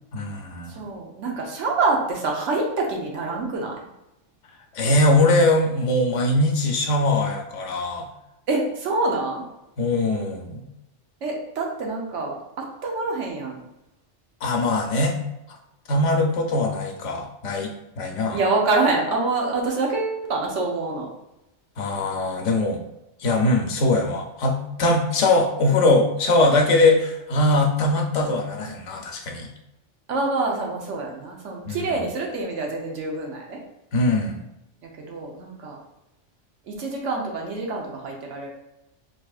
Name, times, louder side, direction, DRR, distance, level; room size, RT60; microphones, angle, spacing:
voice 1, 0.1-0.8 4.7-8.1 9.8-10.7 14.4-15.1 15.9-18.4 21.8-22.8 23.2-29.5 31.7-32.0 33.9-34.4, left 2 dB, 80° left, 3 dB, 1.0 m, -21 dB
voice 2, 0.7-3.8 8.5-9.4 11.2-13.6 18.3-21.1 30.1-33.6 35.0-35.8 36.7-38.5, right 3 dB, 80° right, 0 dB, 1.1 m, -26 dB
4.4 x 2.8 x 2.3 m, 0.91 s
omnidirectional pair, 1.2 m